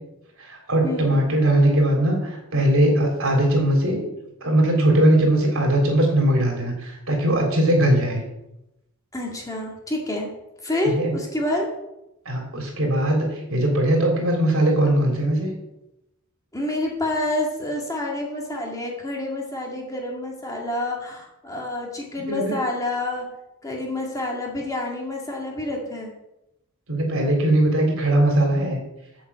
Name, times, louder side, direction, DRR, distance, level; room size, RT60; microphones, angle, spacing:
voice 1, 0.4-4.0 4.4-8.2 10.9-11.1 12.3-15.5 22.3-22.6 26.9-28.8, right 1 dB, 75° right, 1 dB, 3.7 m, -20 dB
voice 2, 9.1-10.3 10.6-11.7 16.5-23.3 23.6-26.1, left 1 dB, 15° left, -1 dB, 2.0 m, -28 dB
7.5 x 7.4 x 8.1 m, 0.90 s
head